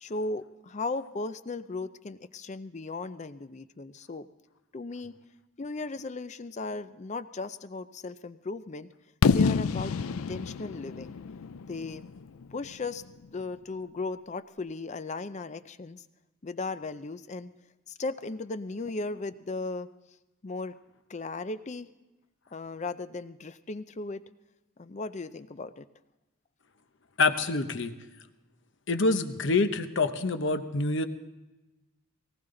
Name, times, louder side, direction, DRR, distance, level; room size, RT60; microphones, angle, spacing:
voice 1, 0.0-4.3 4.7-5.2 5.6-8.9 9.3-11.2 11.7-12.0 12.5-13.0 13.3-16.0 16.4-17.5 17.9-19.9 20.4-20.8 21.1-21.9 22.5-24.2 24.8-25.9, left 3 dB, 35° left, 13 dB, 0.5 m, -36 dB
Fireworks, 9.2-13.1, left 5 dB, 85° left, 0.4 m, -28 dB
voice 2, 27.2-27.9 28.9-31.1, left 3 dB, 60° left, 9 dB, 0.9 m, -26 dB
19.0 x 18.0 x 3.9 m, 1.1 s
head